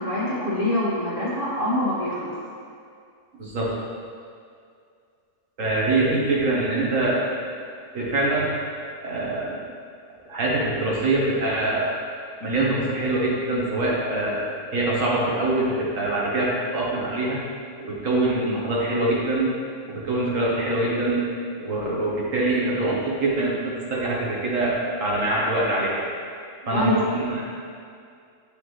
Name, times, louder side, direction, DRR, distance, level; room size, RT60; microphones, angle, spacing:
voice 1, 0.0-2.3 26.6-27.1, left 1 dB, 40° left, -9 dB, 2.0 m, -24 dB
voice 2, 3.3-3.7 5.6-7.2 7.9-8.5 9.0-9.6 10.3-11.9 12.4-14.5 14.7-17.4 17.8-19.6 19.9-21.2 21.6-26.1 26.7-27.5, right 2 dB, 70° right, -5 dB, 1.7 m, -24 dB
9.3 x 5.2 x 3.3 m, 2.3 s
omnidirectional pair, 1.4 m